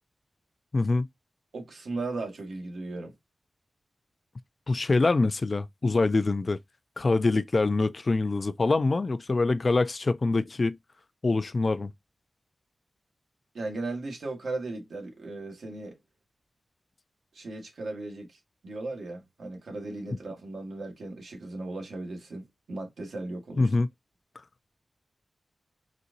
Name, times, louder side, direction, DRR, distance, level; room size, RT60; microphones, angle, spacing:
voice 1, 0.7-1.1 4.7-6.6 7.0-10.8 11.2-11.9 23.6-23.9, left 3 dB, 40° left, 0.3 m, -25 dB
voice 2, 1.5-3.1 13.5-16.0 17.3-23.7, right 2 dB, 85° right, 1.4 m, -37 dB
4.1 x 2.6 x 2.5 m
wide cardioid pair, 110°, 0 cm